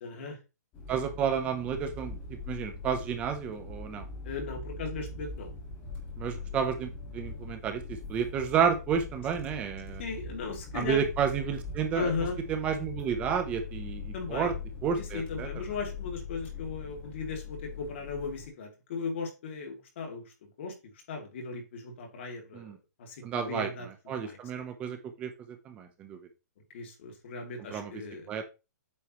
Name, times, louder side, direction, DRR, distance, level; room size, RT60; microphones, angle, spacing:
voice 1, 0.0-0.4 4.2-5.5 10.0-11.0 11.9-12.4 14.1-14.5 15.0-20.7 21.1-22.7 23.0-23.9 24.2-24.6 26.7-28.3, left 4 dB, 45° left, 2 dB, 2.6 m, -37 dB
sound 1, 0.7-18.5, left 4 dB, 20° left, 1.8 m, -41 dB
voice 2, 0.9-2.2 2.5-4.0 6.2-6.9 7.1-10.0 10.7-12.1 12.5-14.5 14.8-15.6 22.5-22.7 23.2-23.7 24.1-25.3 25.7-26.2 27.7-27.9 28.3-28.5, right 7 dB, 15° right, 7 dB, 0.7 m, -31 dB
8.6 x 6.0 x 3.0 m, 0.28 s
hypercardioid pair, 170°, 9 cm